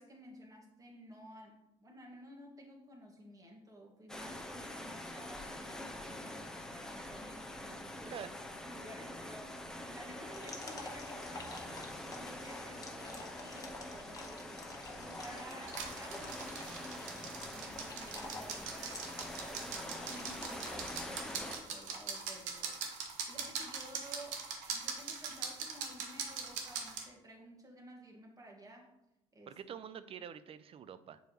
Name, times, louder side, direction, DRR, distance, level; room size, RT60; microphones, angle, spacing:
voice 1, 0.0-8.3 8.6-24.5 24.7-28.9 29.3-29.6, right 1 dB, 25° right, 0 dB, 1.8 m, -54 dB
sound 1, 4.1-21.6, left 1 dB, 5° left, 0.8 m, -45 dB
sound 2, 10.3-21.2, left 2 dB, 25° left, 1.4 m, -50 dB
sound 3, 15.7-27.0, right 5 dB, 75° right, 1.0 m, -42 dB
voice 2, 29.5-31.2, right 8 dB, 45° right, 13 dB, 0.5 m, -46 dB
7.0 x 4.5 x 3.1 m, 0.90 s
supercardioid pair, 65°, 13 cm